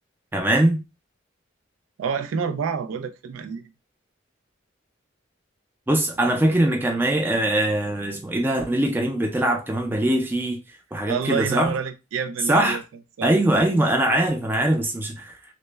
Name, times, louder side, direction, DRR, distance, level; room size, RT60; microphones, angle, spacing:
voice 1, 0.3-0.8 5.9-10.6 10.9-11.7 12.5-12.8 13.2-15.4, right 1 dB, 10° right, 0.3 m, -22 dB
voice 2, 2.0-3.7 11.1-12.8 13.2-13.3, right 6 dB, 90° right, 0.3 m, -28 dB
2.1 x 2.0 x 3.2 m
head